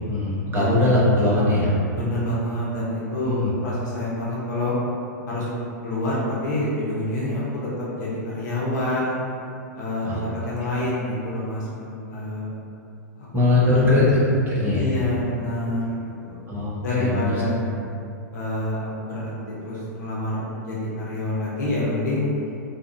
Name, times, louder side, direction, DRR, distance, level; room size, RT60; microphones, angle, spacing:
voice 1, 0.1-1.7 3.2-3.5 10.0-10.2 10.6-10.8 13.3-14.2 14.5-14.8 16.5-16.7 17.0-17.3, left 2 dB, 20° right, -7 dB, 0.8 m, -20 dB
voice 2, 1.9-4.7 5.3-5.5 5.8-9.1 9.7-10.2 10.4-12.5 13.2-13.3 13.6-14.0 14.7-16.4 16.8-17.5 18.3-22.3, left 1 dB, 70° left, -7 dB, 0.8 m, -27 dB
2.8 x 2.4 x 2.6 m, 2.5 s
hypercardioid pair, 115°, 10 cm